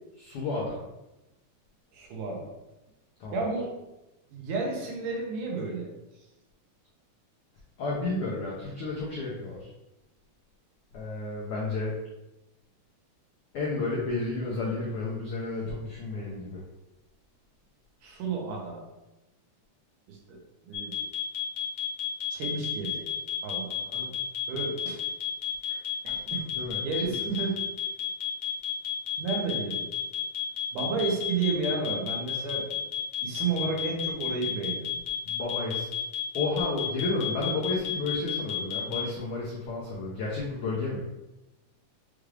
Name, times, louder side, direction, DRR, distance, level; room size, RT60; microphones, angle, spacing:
voice 1, 0.2-0.8 3.2-3.4 7.8-9.7 10.9-11.9 13.5-16.6 26.6-27.2 35.2-35.9 36.3-41.0, left 3 dB, 85° left, -5 dB, 1.2 m, -32 dB
voice 2, 1.9-2.5 3.3-3.7 4.3-5.9 18.0-18.8 20.1-20.4 20.6-21.0 22.3-23.1 23.4-24.1 24.5-25.0 25.7-26.4 26.8-27.6 29.2-29.8 30.7-32.8 33.2-34.9, right 4 dB, 85° right, 0 dB, 2.4 m, -32 dB
sound 1, 20.7-39.0, left 12 dB, 65° left, 1.9 m, -31 dB
6.2 x 2.4 x 3.2 m, 0.97 s
omnidirectional pair, 3.6 m